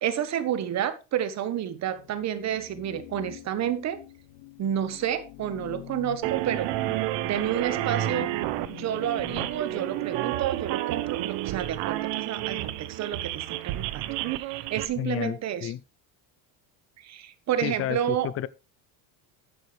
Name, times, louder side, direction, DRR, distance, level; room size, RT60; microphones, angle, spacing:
voice 1, 0.0-4.0 4.6-6.7 7.2-8.3 8.7-14.0 14.4-15.7 17.0-18.3, right 10 dB, 40° right, 1.3 m, -30 dB
sound 1, 2.0-10.1, left 17 dB, 70° left, 1.2 m, -45 dB
sound 2, 6.2-14.9, right 15 dB, 80° right, 0.9 m, -30 dB
voice 2, 15.0-15.8 17.6-18.5, left 12 dB, 35° left, 0.5 m, -31 dB
11.0 x 9.4 x 3.4 m
cardioid pair, 155°, 41 cm